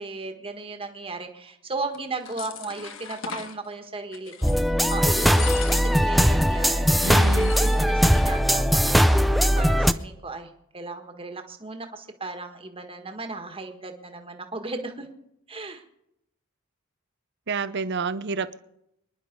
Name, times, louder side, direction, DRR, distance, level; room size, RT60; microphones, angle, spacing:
voice 1, 0.0-6.9 7.6-15.1 15.5-15.8, right 3 dB, 25° right, 1.7 m, -36 dB
sound 1, 1.9-3.6 4.1-4.6 4.9-6.1 6.4-6.5 6.9-8.3 8.5-8.6 8.9-9.4, left 7 dB, 65° left, 1.4 m, -38 dB
sound 2, 4.4-9.9, equal, ahead, 0.5 m, -20 dB
voice 2, 7.0-7.5 17.5-18.6, right 4 dB, 55° right, 0.8 m, -29 dB
24.5 x 11.0 x 5.3 m
head